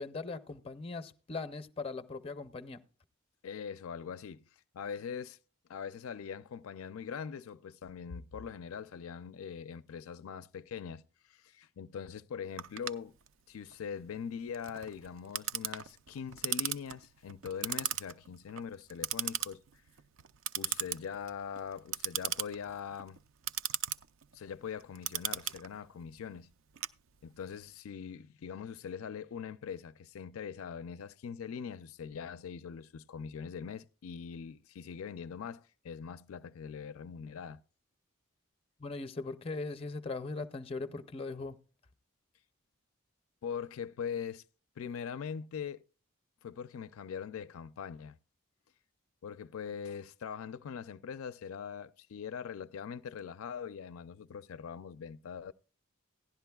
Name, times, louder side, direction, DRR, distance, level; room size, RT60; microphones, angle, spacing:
voice 1, 0.0-2.8 38.8-41.6, left 3 dB, 25° left, 0.6 m, -39 dB
voice 2, 3.4-4.5 4.7-5.4 5.7-11.0 11.3-13.1 13.5-19.6 20.6-23.2 24.3-26.5 27.2-37.6 43.4-44.4 44.8-45.8 46.4-48.2 49.2-55.5, left 7 dB, 80° left, 0.4 m, -42 dB
Clock, 12.6-27.5, right 11 dB, 65° right, 0.4 m, -38 dB
16.0 x 11.0 x 2.3 m
head